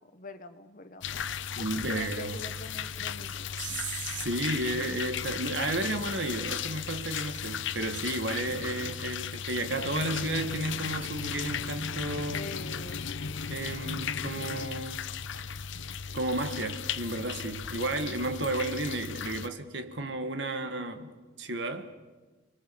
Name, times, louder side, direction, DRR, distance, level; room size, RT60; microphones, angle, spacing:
voice 1, 0.1-1.4 1.9-3.5 12.3-13.1, left 2 dB, 40° left, 1.3 m, -44 dB
sound 1, 1.0-19.5, left 7 dB, 65° left, 0.7 m, -36 dB
voice 2, 1.6-2.4 3.6-12.5 13.5-15.1 16.1-22.0, right 2 dB, 60° right, 1.8 m, -33 dB
29.5 x 22.0 x 7.1 m
head